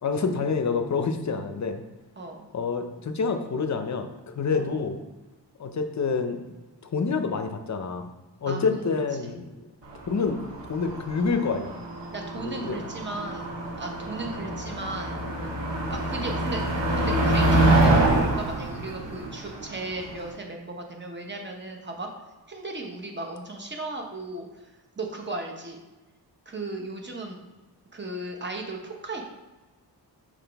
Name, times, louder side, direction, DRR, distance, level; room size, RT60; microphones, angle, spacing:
voice 1, 0.0-1.8 2.5-5.0 5.6-6.4 6.8-8.1 8.4-9.5 10.1-10.4 10.7-11.8 12.4-12.8, left 5 dB, 40° left, 7 dB, 0.6 m, -27 dB
voice 2, 2.2-2.5 4.5-4.7 8.5-9.3 12.1-13.5 13.8-15.2 15.9-16.6 16.9-22.1 22.5-24.7 25.0-25.8 26.5-27.4 27.9-29.3, right 2 dB, 25° right, 2 dB, 0.9 m, -36 dB
Motor vehicle (road), 9.9-20.3, right 1 dB, 85° right, 1.7 m, -26 dB
5.8 x 4.9 x 3.4 m, 1.1 s
wide cardioid pair, 155°, 42 cm